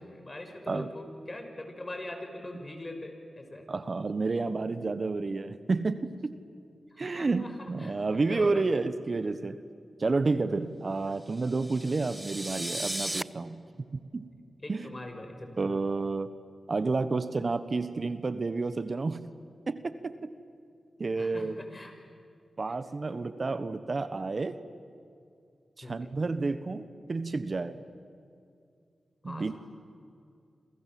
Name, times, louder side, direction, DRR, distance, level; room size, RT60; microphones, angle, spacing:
voice 1, 0.0-3.6 6.9-8.6 14.6-15.6 21.2-21.9 25.8-26.1 29.2-29.6, left 1 dB, 35° left, 5 dB, 6.0 m, -42 dB
voice 2, 3.7-6.4 7.0-9.6 10.0-13.6 13.9-14.3 14.7-15.0 15.6-16.3 16.7-19.3 19.7-20.3 21.0-21.6 22.6-24.6 25.8-27.8 29.2-29.6, right 3 dB, 55° right, 13 dB, 1.2 m, -30 dB
sound 1, 11.3-13.2, right 1 dB, 20° right, 0.8 m, -36 dB
28.0 x 27.5 x 7.7 m, 2.4 s
cardioid pair, 40°, 0 cm